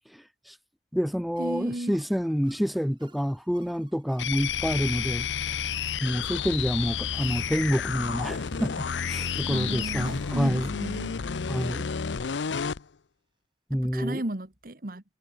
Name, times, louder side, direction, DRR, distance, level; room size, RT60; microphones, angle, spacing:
voice 1, 0.1-0.6 0.9-5.6 6.0-10.7 11.5-11.8 13.7-14.2, equal, ahead, 0.5 m, -28 dB
sound 1, 1.4-11.7, right 4 dB, 25° right, 7.5 m, -57 dB
voice 2, 1.4-2.0 9.5-11.1 13.7-15.0, right 1 dB, 50° right, 1.6 m, -34 dB
sound 2, 4.2-12.8, left 6 dB, 90° left, 0.6 m, -31 dB
head